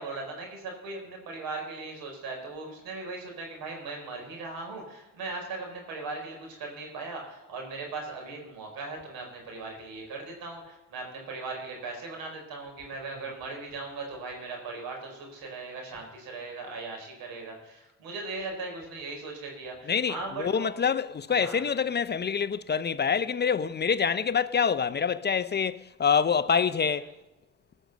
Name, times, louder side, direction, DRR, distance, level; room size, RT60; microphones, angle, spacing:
voice 1, 0.0-20.7 21.4-21.6, right 3 dB, 85° right, 4.6 m, -38 dB
voice 2, 19.9-27.1, left 6 dB, 30° left, 0.5 m, -26 dB
19.0 x 6.4 x 6.6 m
cardioid pair, 85°, 35 cm